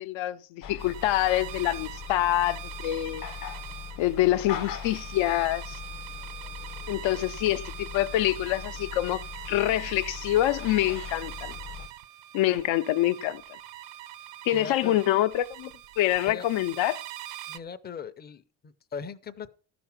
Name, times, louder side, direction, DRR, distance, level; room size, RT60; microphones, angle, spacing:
voice 1, 0.0-3.2 4.0-5.8 6.9-9.2 9.5-11.6 12.3-13.4 14.4-15.7 16.0-17.0, left 14 dB, 80° left, 0.7 m, -26 dB
sound 1, 0.6-11.9, left 8 dB, 50° left, 0.9 m, -40 dB
sound 2, 0.8-17.6, right 13 dB, 70° right, 0.7 m, -43 dB
voice 2, 14.5-15.0 16.3-16.5 17.5-19.5, left 6 dB, 20° left, 0.5 m, -39 dB
14.0 x 6.0 x 5.8 m
cardioid pair, 165°, 45 cm